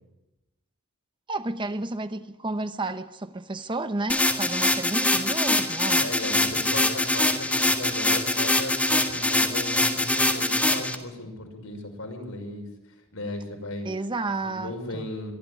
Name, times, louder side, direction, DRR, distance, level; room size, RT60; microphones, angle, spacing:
voice 1, 1.3-6.1 13.8-15.1, right 2 dB, 20° right, 0.8 m, -31 dB
sound 1, 4.1-10.9, left 1 dB, 5° left, 1.7 m, -23 dB
voice 2, 5.8-12.7 13.1-13.9 14.4-15.3, left 1 dB, 70° left, 5.9 m, -36 dB
23.0 x 14.0 x 9.9 m
head